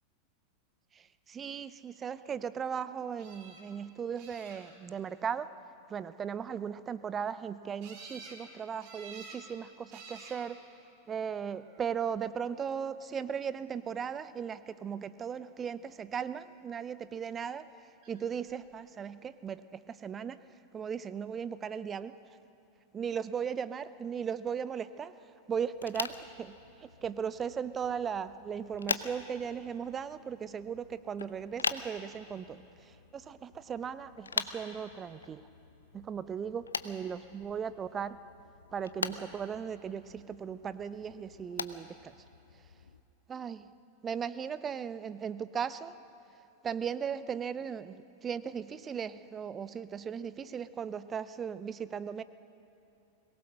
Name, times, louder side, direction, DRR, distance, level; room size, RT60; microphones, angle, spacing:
voice 1, 0.9-5.5 5.9-10.6 11.1-17.7 18.1-20.4 20.7-22.1 22.9-25.1 25.5-35.4 35.9-38.2 38.7-42.1 43.3-43.7 44.0-46.0 46.6-52.2, right 7 dB, 20° right, 15 dB, 0.6 m, -37 dB
sound 1, 3.2-3.6 4.2-4.9 7.8-8.4 8.8-9.4 9.9-10.4 11.3-11.8 18.0-18.1 18.5-18.6, right 4 dB, 45° right, 3.8 m, -50 dB
sound 2, 25.7-43.0, left 5 dB, 75° left, 0.7 m, -42 dB
22.0 x 19.0 x 6.4 m, 2.8 s
figure-of-eight pair, 90°, 0 cm